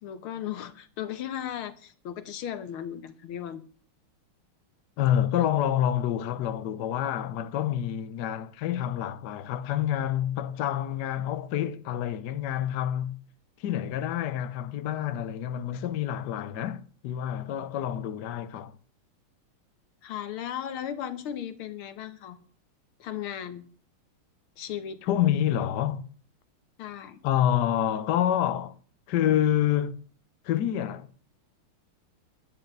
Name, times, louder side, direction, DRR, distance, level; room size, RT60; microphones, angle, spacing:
voice 1, 0.0-3.6 16.2-16.6 20.0-22.4 23.0-23.6 24.6-25.0 26.8-27.2, left 10 dB, 80° left, 2.0 m, -36 dB
voice 2, 5.0-13.2 13.6-18.8 25.0-26.0 27.2-28.8 29.1-30.0 30.4-31.1, left 11 dB, 60° left, 1.2 m, -27 dB
11.0 x 9.9 x 6.6 m
omnidirectional pair, 2.3 m